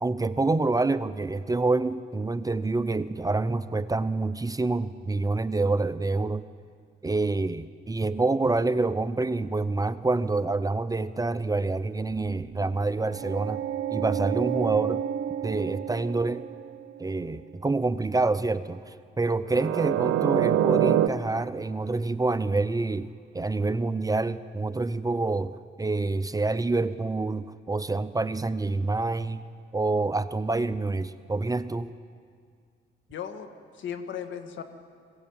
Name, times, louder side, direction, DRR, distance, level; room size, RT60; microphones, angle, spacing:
voice 1, 0.0-6.5 7.0-13.6 13.9-15.0 15.4-16.5 17.0-29.5 29.7-31.9, right 3 dB, 20° right, 13 dB, 0.6 m, -27 dB
sound 1, 12.1-17.0 19.5-21.1, right 11 dB, 80° right, 0.7 m, -27 dB
voice 2, 33.1-34.6, left 8 dB, 70° left, 7 dB, 1.8 m, -37 dB
21.0 x 16.5 x 8.8 m, 2.2 s
cardioid pair, 90°, 20 cm